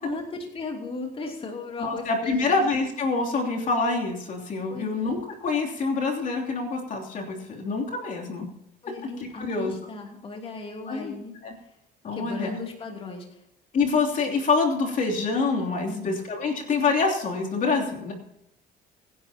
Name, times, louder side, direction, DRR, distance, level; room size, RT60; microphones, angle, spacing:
voice 1, 0.0-2.6 4.7-5.1 8.8-11.4 11.6-11.7 12.1-13.4 15.8-16.2, left 3 dB, 35° left, 1 dB, 2.9 m, -36 dB
voice 2, 1.8-8.5 9.2-9.7 10.9-11.1 11.4-11.5 12.0-12.5 13.7-18.1, left 4 dB, 50° left, 0 dB, 3.0 m, -26 dB
25.0 x 11.0 x 2.9 m, 0.80 s
cardioid pair, 110°, 17 cm